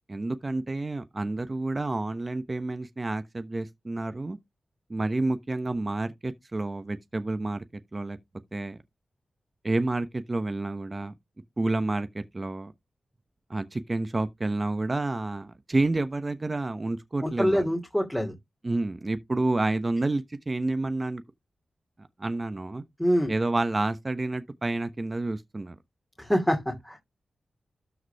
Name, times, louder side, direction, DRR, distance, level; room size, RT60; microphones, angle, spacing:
voice 1, 0.1-4.4 4.9-7.6 7.9-8.2 8.5-8.8 9.6-11.1 11.6-12.7 13.5-17.7 18.6-21.2 22.2-22.8 23.3-25.7, right 2 dB, 30° right, 1.0 m, -29 dB
voice 2, 17.2-18.3 23.0-23.3 26.2-26.6 26.8-27.0, equal, 5° left, 2.7 m, -25 dB
13.0 x 4.8 x 3.5 m
cardioid pair, 70°, 0 cm